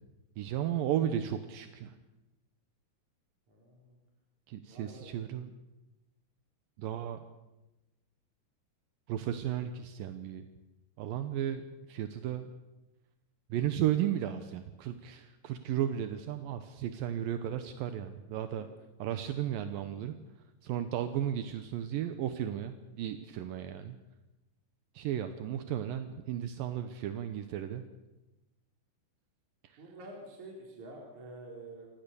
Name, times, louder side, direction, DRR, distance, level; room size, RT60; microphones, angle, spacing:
voice 1, 0.4-2.0 4.5-5.5 6.8-7.2 9.1-10.5 11.0-12.5 13.5-18.7 19.0-20.1 20.6-24.0 24.9-27.8 29.6-29.8, right 10 dB, 75° right, 9 dB, 2.2 m, -34 dB
voice 2, 3.5-4.0 4.7-5.1 18.4-18.7 29.8-31.9, right 2 dB, 45° right, -1 dB, 4.7 m, -48 dB
26.5 x 19.5 x 7.0 m, 1.0 s
omnidirectional pair, 5.2 m